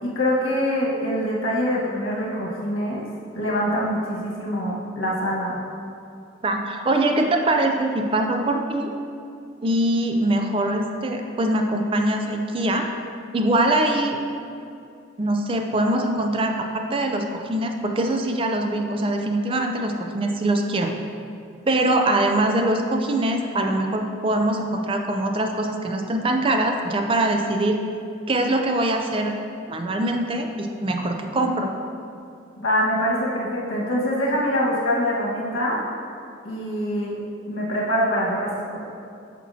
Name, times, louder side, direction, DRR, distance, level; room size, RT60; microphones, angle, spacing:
voice 1, 0.0-3.1 3.3-5.6 32.6-35.8 36.4-37.2 37.5-38.8, equal, 85° left, -4 dB, 1.5 m, -24 dB
voice 2, 6.4-8.9 9.6-12.9 13.3-14.2 15.2-20.9 21.7-27.8 28.3-29.4 29.7-31.7, right 1 dB, 25° right, 4 dB, 0.4 m, -23 dB
8.4 x 5.9 x 2.8 m, 2.5 s
head